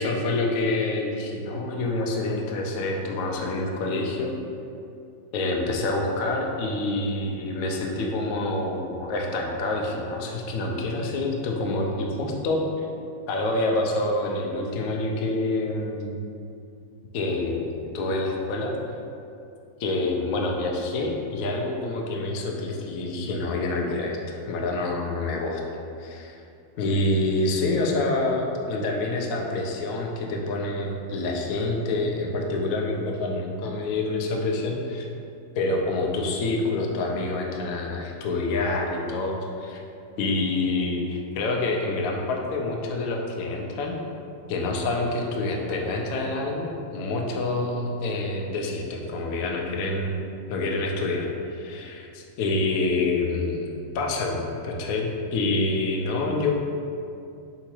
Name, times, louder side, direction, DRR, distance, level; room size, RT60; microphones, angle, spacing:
voice 1, 0.0-4.4 5.3-12.9 13.3-16.1 17.1-18.7 19.8-25.6 26.0-26.4 26.8-35.1 35.6-39.8 40.2-44.0 44.5-50.2 50.5-53.7 53.9-56.5, left 2 dB, 85° left, 0 dB, 0.7 m, -27 dB
3.7 x 2.8 x 4.4 m, 2.5 s
omnidirectional pair, 2.0 m